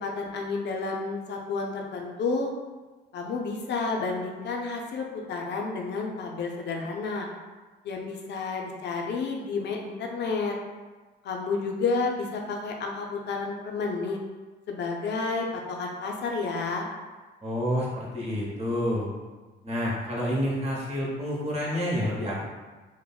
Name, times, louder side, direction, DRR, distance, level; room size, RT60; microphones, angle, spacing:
voice 1, 0.0-2.5 3.1-7.3 7.8-10.5 11.2-14.2 14.7-16.9, left 4 dB, 60° left, 1 dB, 0.5 m, -30 dB
voice 2, 17.4-19.1 19.6-22.5, equal, 35° right, -4 dB, 0.9 m, -28 dB
3.4 x 2.1 x 2.3 m, 1.3 s
cardioid pair, 90°, 20 cm